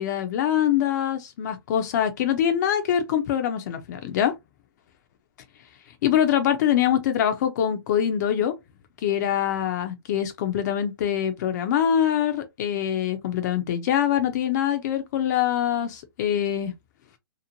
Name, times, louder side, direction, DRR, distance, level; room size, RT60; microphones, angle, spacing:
voice 1, 0.0-4.3 6.0-8.5 9.0-16.7, left 10 dB, 45° left, 0.5 m, -24 dB
2.9 x 2.1 x 2.5 m
hypercardioid pair, 135°, 13 cm